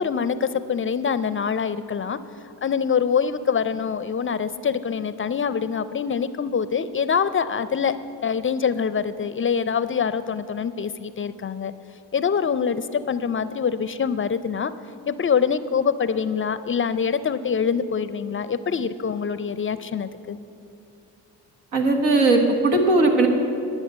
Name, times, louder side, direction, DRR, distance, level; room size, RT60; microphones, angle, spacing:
voice 1, 0.0-2.2 2.6-8.0 8.2-11.7 12.1-14.7 15.1-20.4, left 6 dB, 30° left, 14 dB, 0.4 m, -24 dB
voice 2, 21.7-23.3, right 2 dB, 90° right, 2 dB, 1.3 m, -18 dB
10.5 x 6.9 x 8.1 m, 2.6 s
hypercardioid pair, 50°, 46 cm